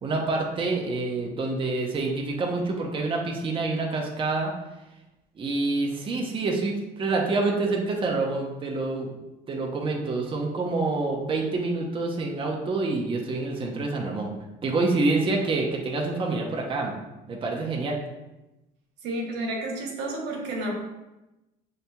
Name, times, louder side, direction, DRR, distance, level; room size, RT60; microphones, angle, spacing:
voice 1, 0.0-4.5 5.4-9.1 9.5-14.3 14.6-16.9 17.3-18.0, right 3 dB, 30° right, 0 dB, 0.7 m, -27 dB
voice 2, 19.0-20.7, right 1 dB, 90° right, -1 dB, 1.0 m, -31 dB
6.5 x 2.8 x 2.2 m, 1.0 s
cardioid pair, 110°, 17 cm